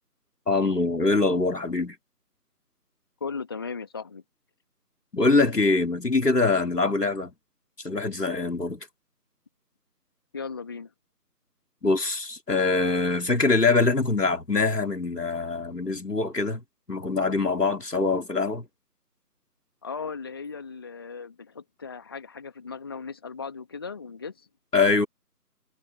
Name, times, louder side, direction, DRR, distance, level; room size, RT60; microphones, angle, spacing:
voice 1, 0.5-2.0 5.1-7.3 7.8-8.9 11.8-16.6 16.9-18.7 24.7-25.1, left 3 dB, 75° left, 3.5 m, -23 dB
voice 2, 3.2-4.2 10.3-10.9 19.8-24.5, left 5 dB, 15° left, 2.2 m, -37 dB
figure-of-eight pair, 165°, 48 cm